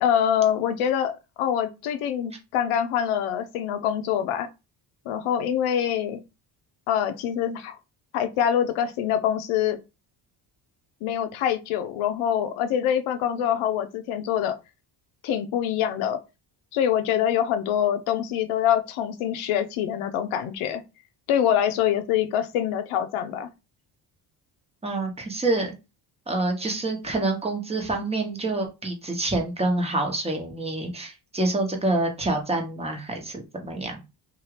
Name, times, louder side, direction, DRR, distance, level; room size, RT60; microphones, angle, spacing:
voice 1, 0.0-1.1 1.4-4.5 5.1-6.2 6.9-7.8 8.1-9.8 11.0-14.6 15.2-16.2 16.7-20.8 21.3-23.5, left 9 dB, 85° left, 0.6 m, -25 dB
voice 2, 24.8-25.7 26.3-34.0, right 2 dB, 15° right, 0.9 m, -27 dB
2.7 x 2.4 x 3.1 m
cardioid pair, 95°, 48 cm